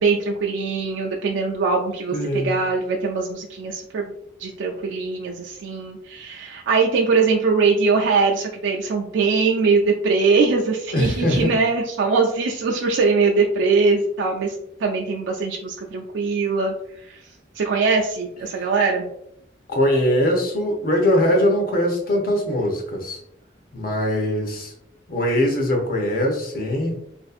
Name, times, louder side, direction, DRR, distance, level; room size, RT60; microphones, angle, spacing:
voice 1, 0.0-4.1 4.4-14.6 14.8-16.7 17.1-17.2 17.6-19.1, right 4 dB, 65° right, 0 dB, 0.3 m, -21 dB
voice 2, 2.1-2.5 10.9-11.5 18.6-18.7 19.7-23.2 23.7-24.7 25.1-27.0, left 1 dB, 45° left, 1 dB, 0.6 m, -21 dB
2.6 x 2.4 x 2.3 m, 0.75 s
head